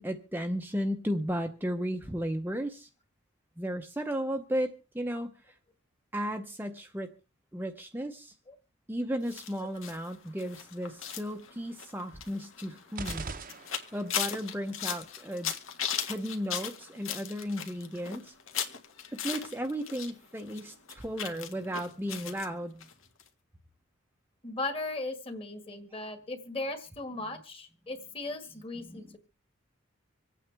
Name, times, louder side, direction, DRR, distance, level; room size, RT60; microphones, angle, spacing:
voice 1, 0.0-2.9 3.6-5.5 6.1-7.1 7.5-8.4 8.9-13.3 13.9-15.5 16.1-18.3 19.1-22.9 28.8-29.0, equal, 10° right, 5 dB, 0.7 m, -34 dB
sound 1, 9.3-20.1 20.4-22.5 22.8-22.9 23.2-23.3, left 9 dB, 70° left, 1.7 m, -38 dB
sound 2, 13.0-14.3, right 4 dB, 40° right, 0.8 m, -40 dB
voice 2, 24.4-29.2, left 2 dB, 25° left, 7 dB, 1.8 m, -37 dB
26.0 x 8.9 x 3.4 m, 0.32 s
head